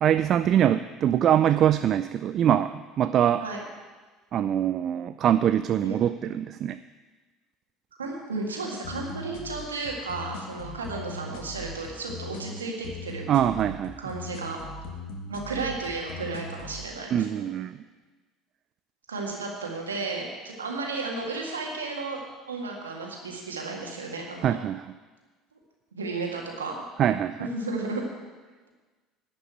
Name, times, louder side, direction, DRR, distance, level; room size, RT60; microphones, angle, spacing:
voice 1, 0.0-3.4 4.3-6.8 13.3-14.0 17.1-17.8 24.4-25.0 27.0-27.5, right 10 dB, 45° right, 12 dB, 0.4 m, -23 dB
voice 2, 8.0-13.3 14.0-14.6 15.3-17.3 19.1-24.6 25.9-26.8 27.4-28.0, right 3 dB, 85° right, 0 dB, 1.8 m, -33 dB
sound 1, 8.8-16.8, left 2 dB, 65° left, 1.6 m, -40 dB
11.5 x 5.5 x 8.9 m, 1.3 s
figure-of-eight pair, 65°, 0 cm